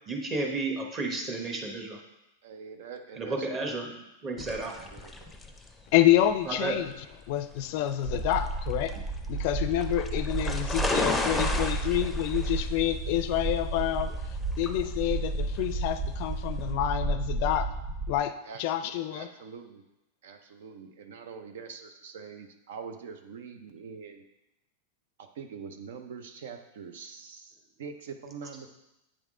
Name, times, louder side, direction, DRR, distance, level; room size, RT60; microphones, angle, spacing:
voice 1, 0.1-2.0 3.2-3.9 4.2-4.7 6.5-6.8, right 3 dB, 25° right, 1 dB, 1.1 m, -32 dB
voice 2, 2.4-4.0 4.5-5.3 18.5-18.8 19.1-19.8 20.2-24.2 25.2-28.7, right 6 dB, 75° right, 7 dB, 0.7 m, -44 dB
sound 1, 4.4-16.7, left 2 dB, 5° left, 0.6 m, -36 dB
voice 3, 5.9-6.9 7.3-8.9 9.3-14.1 14.6-17.7 18.1-18.3 18.6-19.3, left 13 dB, 55° left, 11 dB, 0.4 m, -27 dB
sound 2, 8.0-18.2, right 3 dB, 45° right, 1.4 m, -32 dB
8.5 x 3.5 x 3.7 m, 0.90 s
supercardioid pair, 135°, 0 cm